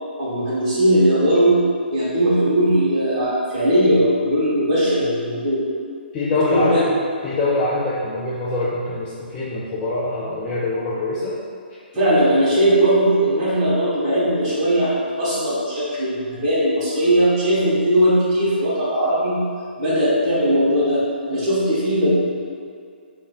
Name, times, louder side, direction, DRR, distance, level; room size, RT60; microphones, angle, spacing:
voice 1, 0.2-1.6 1.9-5.6 6.5-6.8 11.9-19.4 19.8-22.1, right 1 dB, 35° right, -10 dB, 1.3 m, -19 dB
voice 2, 6.1-6.9 7.2-11.4, left 2 dB, 20° left, -8 dB, 0.4 m, -24 dB
3.3 x 2.1 x 3.8 m, 2.3 s
figure-of-eight pair, 130°, 6 cm